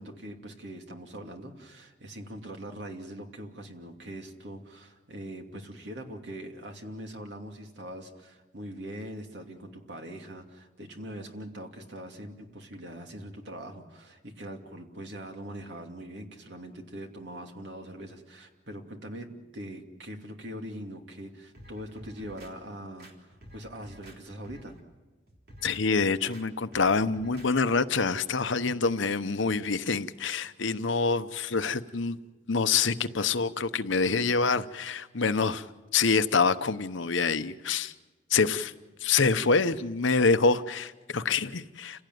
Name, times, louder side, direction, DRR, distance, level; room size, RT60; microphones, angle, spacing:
voice 1, 0.0-24.8, right 1 dB, 70° right, 3 dB, 2.7 m, -42 dB
sound 1, 21.6-22.5 23.0-24.2 24.4-24.8 25.3-25.8 26.3-26.4 26.7-27.5 27.9-28.0, equal, 50° right, 3.7 m, -50 dB
voice 2, 25.6-32.2 32.5-35.6 35.9-37.9 38.3-38.7 39.0-42.0, left 4 dB, 85° left, 12 dB, 0.9 m, -26 dB
29.5 x 17.0 x 9.4 m, 1.2 s
head